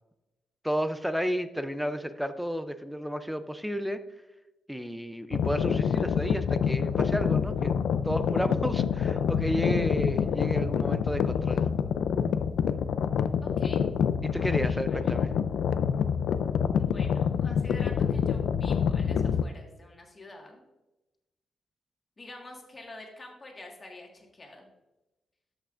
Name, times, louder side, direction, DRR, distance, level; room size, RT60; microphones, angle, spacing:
voice 1, 0.6-4.0 4.7-7.8 8.0-11.6 14.2-15.3, equal, ahead, 11 dB, 0.5 m, -32 dB
sound 1, 5.3-19.4, left 7 dB, 85° left, 0.4 m, -27 dB
voice 2, 13.4-13.8 14.5-15.2 16.8-20.6 22.2-24.7, left 2 dB, 30° left, 1 dB, 1.7 m, -47 dB
13.0 x 5.7 x 2.5 m, 1.0 s
cardioid pair, 120°, 0 cm